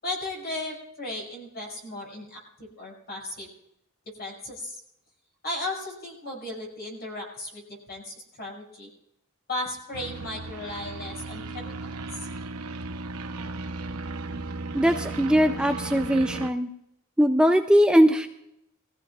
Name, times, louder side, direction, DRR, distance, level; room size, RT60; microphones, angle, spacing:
voice 1, 0.0-3.5 4.2-4.8 5.4-7.6 7.9-8.9 9.5-11.9, left 1 dB, 50° left, -1 dB, 5.9 m, -35 dB
sound 1, 9.9-16.5, right 3 dB, 85° right, 0.9 m, -36 dB
voice 2, 14.7-16.7 17.2-18.3, equal, 5° right, 6 dB, 0.5 m, -20 dB
22.5 x 15.0 x 2.4 m, 0.79 s
head